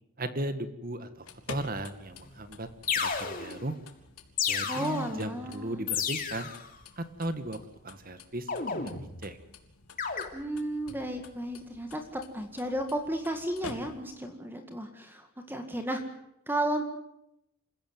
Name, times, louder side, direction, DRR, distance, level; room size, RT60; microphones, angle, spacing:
voice 1, 0.2-2.7 2.9-3.7 4.5-6.5 7.0-7.6 7.8-8.5 9.2-9.4, right 1 dB, 40° right, 11 dB, 1.7 m, -36 dB
sound 1, 1.1-14.3, left 3 dB, 90° left, 3.4 m, -50 dB
sound 2, 2.2-2.3 2.9-3.7 4.4-5.2 5.9-6.7 8.5-9.3 10.0-10.2, left 6 dB, 40° left, 3.2 m, -32 dB
voice 2, 4.7-5.8 10.3-16.0 16.5-16.8, right 1 dB, 10° right, 6 dB, 1.9 m, -33 dB
28.0 x 15.5 x 9.4 m, 0.83 s
head